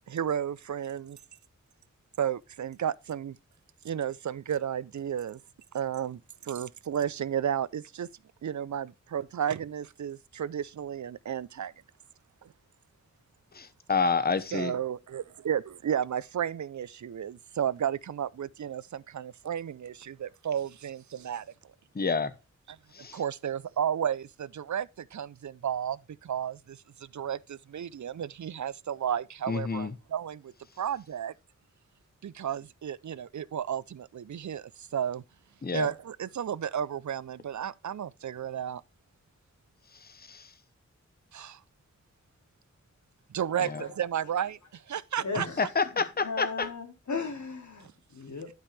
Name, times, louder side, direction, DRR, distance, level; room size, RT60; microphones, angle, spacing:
voice 1, 0.1-1.2 2.2-3.4 3.8-5.4 5.7-8.1 8.4-11.7 12.4-12.5 14.5-21.5 22.7-22.8 23.1-30.5 30.8-31.3 32.2-35.2 35.7-38.8 41.3-41.6 43.3-45.5, right 9 dB, 75° right, 0.5 m, -33 dB
voice 2, 13.5-14.7 21.9-22.3 22.9-23.2 29.5-29.9 35.6-35.9 40.0-40.5 43.6-43.8 45.6-46.7, left 5 dB, 35° left, 0.8 m, -29 dB
voice 3, 45.2-48.5, left 4 dB, 80° left, 2.3 m, -37 dB
11.5 x 5.4 x 3.2 m
wide cardioid pair, 95°, 29 cm